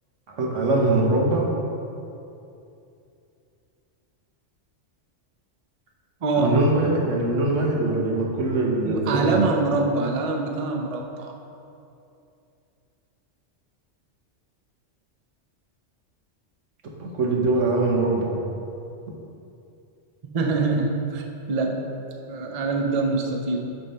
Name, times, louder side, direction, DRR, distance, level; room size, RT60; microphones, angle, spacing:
voice 1, 0.3-1.5 6.4-9.5 17.0-18.3, right 2 dB, 85° right, -1 dB, 1.4 m, -22 dB
voice 2, 6.2-6.6 8.8-11.3 20.3-21.8 22.3-23.6, right 3 dB, 40° right, 2 dB, 0.5 m, -24 dB
8.1 x 3.6 x 5.5 m, 2.7 s
omnidirectional pair, 1.3 m